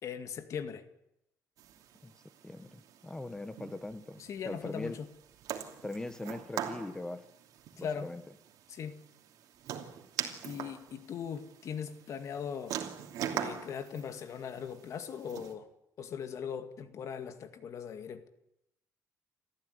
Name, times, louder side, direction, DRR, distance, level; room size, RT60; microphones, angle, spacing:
voice 1, 0.0-0.9 4.2-5.1 7.8-8.1 8.7-9.0 10.4-12.8 13.3-15.7 16.0-18.3, left 7 dB, 55° left, 2.1 m, -39 dB
sound 1, 1.6-15.5, right 9 dB, 90° right, 2.8 m, -43 dB
voice 2, 2.4-5.0 5.8-7.2 7.8-8.2, left 2 dB, 10° left, 1.2 m, -41 dB
29.5 x 14.0 x 9.6 m
cardioid pair, 150°, 6 cm